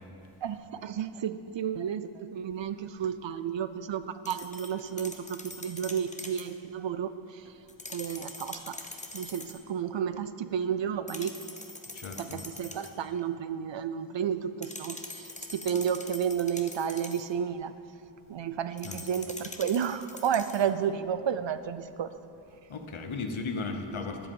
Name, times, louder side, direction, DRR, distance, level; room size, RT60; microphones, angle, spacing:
voice 1, 0.4-7.1 7.9-8.8 9.1-11.3 12.2-17.7 18.3-22.1, right 8 dB, 65° right, 12 dB, 0.5 m, -32 dB
sound 1, 4.2-6.5 7.7-9.6 11.1-13.0 14.6-17.3 18.8-20.7, left 2 dB, 15° left, 0.8 m, -44 dB
voice 2, 11.9-12.4 18.8-19.0 22.7-24.3, left 3 dB, 75° left, 5 dB, 1.0 m, -35 dB
11.0 x 7.7 x 5.4 m, 2.9 s
wide cardioid pair, 80°, 48 cm